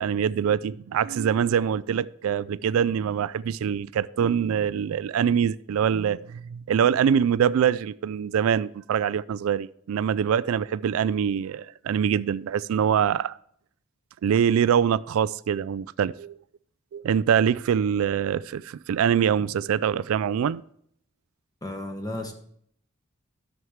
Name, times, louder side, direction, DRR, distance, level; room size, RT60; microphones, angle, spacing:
voice 1, 0.0-13.4 14.2-16.4 16.9-20.6, right 8 dB, 75° right, 0.3 m, -24 dB
voice 2, 21.6-22.3, left 1 dB, 20° left, 1.2 m, -33 dB
11.0 x 7.1 x 3.2 m
head